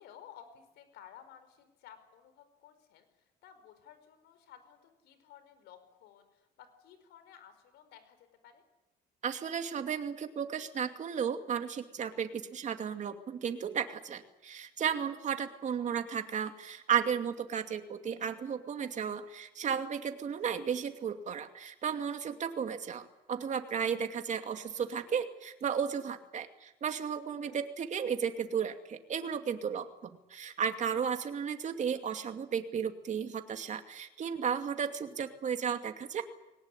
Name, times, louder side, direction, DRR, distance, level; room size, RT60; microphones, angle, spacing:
voice 1, 0.0-3.1 3.4-8.6 20.5-20.6 27.4-27.6, left 9 dB, 85° left, 10 dB, 5.1 m, -55 dB
voice 2, 9.2-29.9 30.3-36.2, right 7 dB, 45° right, 7 dB, 2.5 m, -34 dB
22.0 x 19.0 x 10.0 m, 0.95 s
cardioid pair, 110°, 17 cm